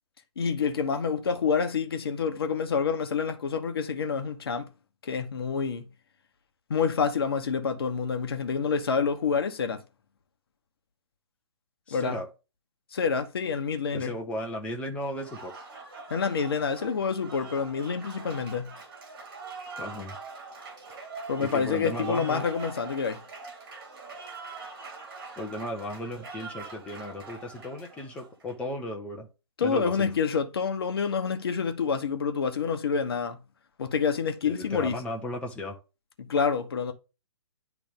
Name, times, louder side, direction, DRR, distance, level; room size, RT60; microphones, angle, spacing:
voice 1, 0.4-4.7 5.0-5.9 6.7-9.8 11.9-12.2 12.9-14.1 16.1-18.7 21.3-23.2 29.6-33.4 33.8-35.0 36.2-36.9, left 6 dB, 55° left, 1.0 m, -27 dB
voice 2, 11.9-12.3 13.9-15.5 19.8-20.2 21.4-22.5 25.3-29.3 29.6-30.1 34.4-35.8, left 1 dB, 10° left, 0.9 m, -35 dB
Applause, 15.0-28.7, right 4 dB, 45° right, 2.9 m, -43 dB
10.0 x 3.5 x 3.7 m
figure-of-eight pair, 130°, 15 cm